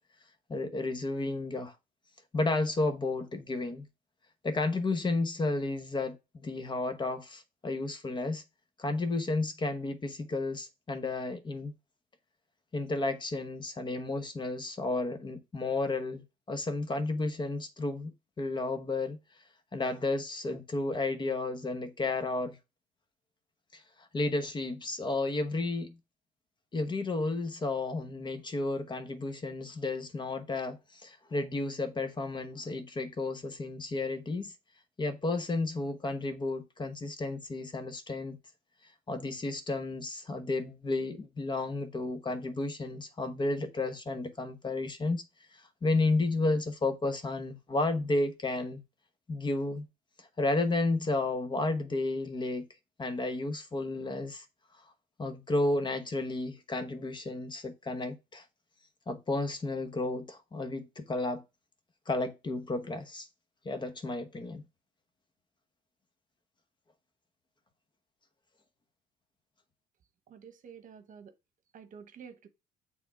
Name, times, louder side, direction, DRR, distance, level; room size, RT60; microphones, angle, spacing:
voice 1, 0.5-1.7 2.3-3.9 4.4-8.4 8.8-11.7 12.7-19.2 19.7-22.6 23.7-26.0 26.7-34.5 35.0-38.4 39.1-45.2 45.8-48.8 49.3-49.9 50.2-52.7 53.0-54.4 55.2-58.4 59.1-61.4 62.1-63.3 63.6-64.6, left 2 dB, 25° left, 1.0 m, -32 dB
voice 2, 70.3-71.3 71.7-72.5, right 7 dB, 50° right, 1.1 m, -50 dB
6.9 x 3.7 x 4.7 m
cardioid pair, 110°, 17 cm